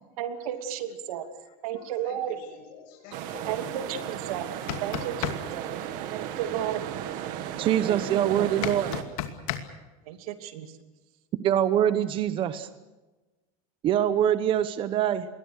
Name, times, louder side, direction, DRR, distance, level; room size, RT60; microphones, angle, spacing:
voice 1, 0.2-1.2 1.6-2.3 3.5-4.5 4.8-5.7 6.1-6.8 7.9-8.5 10.1-10.7, right 10 dB, 85° right, 7 dB, 2.8 m, -33 dB
voice 2, 1.1-4.0 4.3-5.2 5.7-5.9, left 6 dB, 55° left, 1 dB, 7.5 m, -51 dB
sound 1, 3.1-9.0, right 10 dB, 50° right, 2.1 m, -35 dB
sound 2, 4.5-5.4 8.6-9.6, left 12 dB, 75° left, 2.6 m, -31 dB
voice 3, 7.6-8.9 11.4-12.7 13.8-15.3, right 10 dB, 30° right, 12 dB, 1.0 m, -24 dB
28.0 x 21.5 x 6.5 m, 1.2 s
cardioid pair, 170°, 18 cm